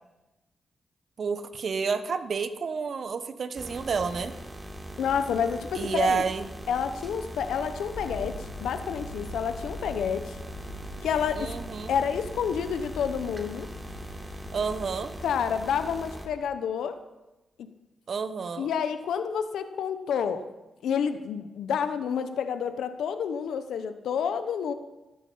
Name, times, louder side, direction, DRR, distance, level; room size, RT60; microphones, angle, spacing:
voice 1, 1.2-4.4 5.7-6.5 11.4-11.9 14.5-15.1 18.1-18.7, right 5 dB, 65° right, 11 dB, 1.2 m, -30 dB
sound 1, 3.6-16.3, right 1 dB, 20° right, 3.6 m, -41 dB
voice 2, 5.0-6.2 6.7-10.4 11.0-11.5 11.9-13.7 15.2-17.0 17.6-17.7 18.6-20.4 20.8-24.7, left 7 dB, 90° left, 9 dB, 1.0 m, -29 dB
sound 2, 7.9-16.2, left 2 dB, 70° left, 1.8 m, -43 dB
17.0 x 12.5 x 5.6 m, 1.0 s
cardioid pair, 65°, 0 cm